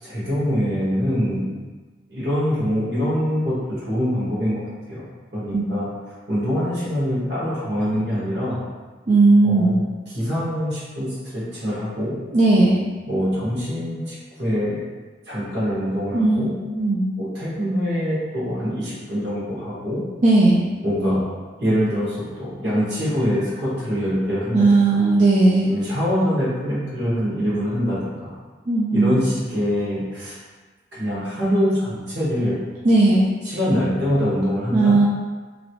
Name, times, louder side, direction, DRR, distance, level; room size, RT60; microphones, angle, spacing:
voice 1, 0.0-1.5 2.1-3.5 3.8-4.6 4.9-5.0 5.3-5.9 6.3-8.6 9.4-12.1 13.1-14.8 15.3-16.5 17.2-20.0 20.8-21.2 21.6-25.0 25.6-28.3 28.9-30.4 30.9-32.6 33.4-34.9, equal, 60° right, -9 dB, 1.4 m, -24 dB
voice 2, 9.1-9.8 12.3-12.8 16.1-17.1 20.2-20.6 24.5-25.7 28.7-29.2 32.8-33.3 34.7-35.1, right 2 dB, 40° right, -7 dB, 0.4 m, -16 dB
3.0 x 2.7 x 2.9 m, 1.3 s
head